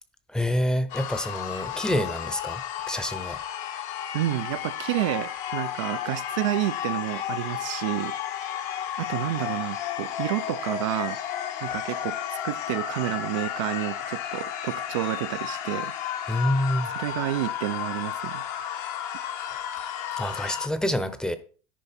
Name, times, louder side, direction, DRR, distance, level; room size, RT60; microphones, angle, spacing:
voice 1, 0.3-3.4 16.3-16.9 19.5-19.6 20.2-21.4, left 1 dB, 5° left, 0.7 m, -27 dB
sound 1, 0.9-20.7, left 10 dB, 55° left, 1.0 m, -33 dB
voice 2, 4.1-8.1 8.7-11.2 11.6-12.2 12.4-15.9 16.9-18.4, right 15 dB, 90° right, 0.5 m, -30 dB
10.0 x 4.9 x 4.3 m
supercardioid pair, 130°, 15 cm